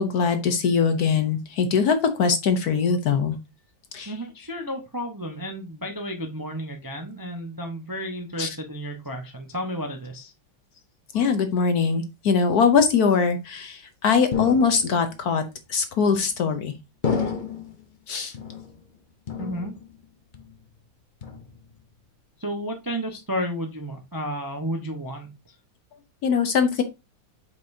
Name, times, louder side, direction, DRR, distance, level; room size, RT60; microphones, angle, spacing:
voice 1, 0.0-3.4 3.9-4.1 8.4-8.5 11.1-15.4 15.7-16.7 18.1-18.3 26.2-26.8, left 5 dB, 60° left, 9 dB, 1.1 m, -22 dB
voice 2, 4.1-10.3 19.4-19.7 22.4-25.5, equal, 20° right, 4 dB, 0.5 m, -32 dB
sound 1, 14.3-15.2 16.0-16.5 17.0-17.8 18.3-19.0 19.3-20.0 20.3-20.8 21.2-21.8, left 6 dB, 40° left, 0.7 m, -31 dB
8.2 x 5.2 x 2.7 m, 0.24 s
omnidirectional pair, 2.1 m